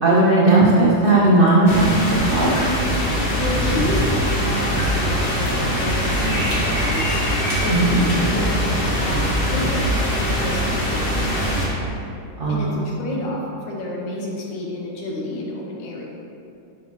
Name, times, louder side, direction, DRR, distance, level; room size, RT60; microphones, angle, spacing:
voice 1, 0.0-2.6 7.7-7.9 12.4-12.8, right 2 dB, 70° right, -6 dB, 0.5 m, -16 dB
sound 1, 1.7-11.7, equal, 40° left, 0.9 m, -22 dB
voice 2, 3.4-7.2 7.6-11.9 12.5-16.1, left 1 dB, 80° left, -2 dB, 1.7 m, -30 dB
6.2 x 6.1 x 2.9 m, 2.6 s
omnidirectional pair, 2.0 m